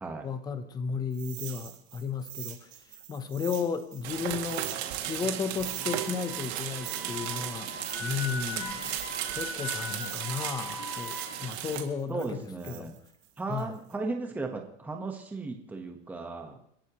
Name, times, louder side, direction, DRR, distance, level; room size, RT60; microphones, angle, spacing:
voice 1, 0.2-2.7 3.1-7.7 8.0-9.0 9.3-12.9 13.5-13.8, left 6 dB, 10° left, 10 dB, 0.7 m, -34 dB
sound 1, 1.1-5.3 5.6-9.5 9.8-13.9, right 12 dB, 40° right, 7.4 m, -44 dB
sound 2, 4.0-11.8, right 12 dB, 65° right, 2.3 m, -35 dB
Wind instrument woodwind instrument, 5.6-11.4, left 3 dB, 75° left, 6.8 m, -41 dB
voice 2, 12.1-12.9 13.4-16.6, right 3 dB, 5° right, 3 dB, 1.2 m, -36 dB
30.0 x 12.0 x 3.0 m, 0.67 s
supercardioid pair, 175°, 35 cm